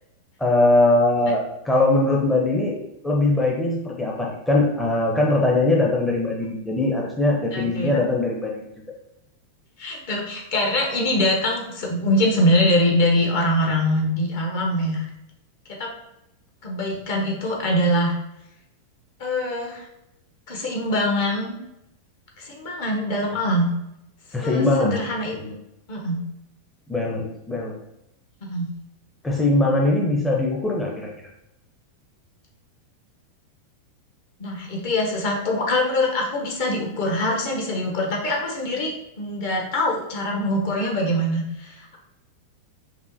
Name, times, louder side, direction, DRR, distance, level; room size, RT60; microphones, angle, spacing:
voice 1, 0.4-2.7 3.0-8.6 24.3-25.0 25.3-25.6 26.9-27.8 29.2-31.1, left 2 dB, 10° left, -2 dB, 0.6 m, -21 dB
voice 2, 7.5-8.0 9.8-15.1 15.8-15.9 16.6-18.2 19.2-19.9 20.5-21.6 22.4-23.7 24.4-25.3 25.9-26.2 28.4-28.7 34.4-42.0, left 1 dB, 50° left, 0 dB, 1.0 m, -23 dB
5.5 x 2.1 x 2.6 m, 0.83 s
figure-of-eight pair, 90°, 0 cm